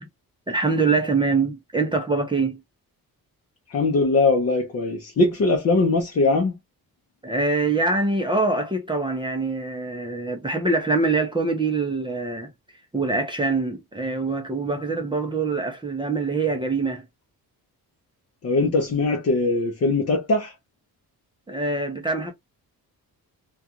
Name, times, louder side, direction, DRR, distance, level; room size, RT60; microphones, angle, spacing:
voice 1, 0.5-2.6 7.2-12.5 12.9-17.0 21.5-22.3, right 3 dB, 15° right, 0.6 m, -24 dB
voice 2, 3.7-6.6 18.4-20.5, left 3 dB, 40° left, 0.6 m, -21 dB
2.4 x 2.3 x 2.8 m
cardioid pair, 125°, 37 cm